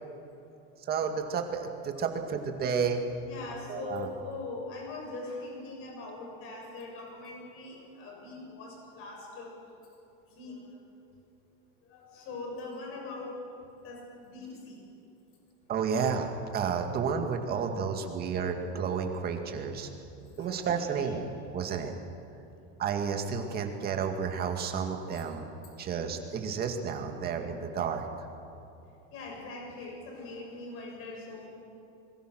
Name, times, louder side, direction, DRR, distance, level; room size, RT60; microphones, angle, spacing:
voice 1, 0.9-3.0 3.7-4.1 15.7-19.9 20.4-21.9 22.8-25.5 25.8-28.0, right 6 dB, 30° right, 4 dB, 2.2 m, -31 dB
voice 2, 3.2-9.6 10.3-10.8 11.8-13.3 13.8-14.8 17.5-17.6 19.5-19.6 20.4-21.1 21.7-21.8 25.1-25.2 29.1-31.5, left 3 dB, 45° left, -1 dB, 7.1 m, -42 dB
25.5 x 22.5 x 6.4 m, 2.8 s
cardioid pair, 160°, 31 cm